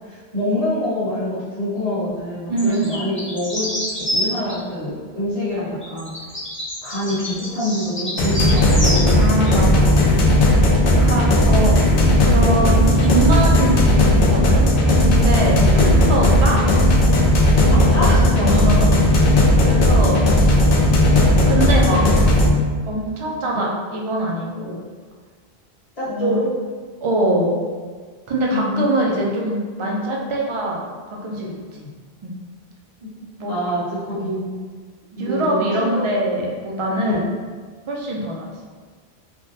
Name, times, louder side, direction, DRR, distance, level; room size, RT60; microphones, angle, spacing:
voice 1, 0.0-6.1 6.8-9.2 10.0-10.2 15.6-16.0 17.7-18.4 26.0-26.5 28.5-29.2 31.8-31.9 33.0-33.1 33.5-34.5 35.2-36.1 37.0-37.2, left 1 dB, 40° left, -12 dB, 1.2 m, -26 dB
voice 2, 2.5-2.8 9.1-10.0 11.0-11.8 12.2-14.6 15.0-16.6 17.6-17.8 18.4-20.6 21.0-22.1 22.9-24.8 26.0-26.3 27.0-27.6 28.3-31.8 32.2-32.3 33.4-33.5 34.1-34.3 35.2-37.2 37.9-38.5, right 1 dB, 45° right, -2 dB, 0.4 m, -23 dB
sound 1, 2.6-4.6 5.8-9.1 9.5-9.6, left 1 dB, 15° left, 0.7 m, -27 dB
sound 2, 8.2-22.5, left 1 dB, 65° left, 0.7 m, -15 dB
3.6 x 2.2 x 2.6 m, 1.5 s
omnidirectional pair, 1.0 m